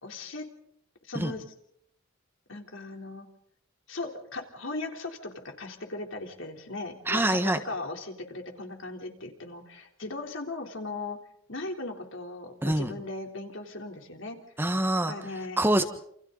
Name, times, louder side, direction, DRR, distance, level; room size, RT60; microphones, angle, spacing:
voice 1, 0.0-0.4 1.1-1.4 2.5-3.3 3.9-11.2 11.5-14.4 15.1-15.6, left 2 dB, 70° left, 3 dB, 3.7 m, -38 dB
voice 2, 7.1-7.6 12.6-12.9 14.6-15.1 15.6-15.8, right 1 dB, 10° right, 7 dB, 1.4 m, -25 dB
28.5 x 28.5 x 4.1 m, 0.70 s
head